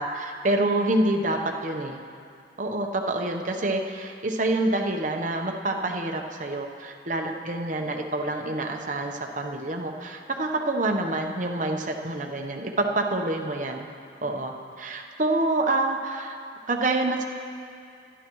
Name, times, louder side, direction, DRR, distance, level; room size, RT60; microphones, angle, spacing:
voice 1, 0.0-2.0 2.6-13.9 14.2-16.4 16.7-17.2, right 2 dB, 45° right, 2 dB, 0.9 m, -27 dB
27.5 x 11.0 x 3.1 m, 2.4 s
head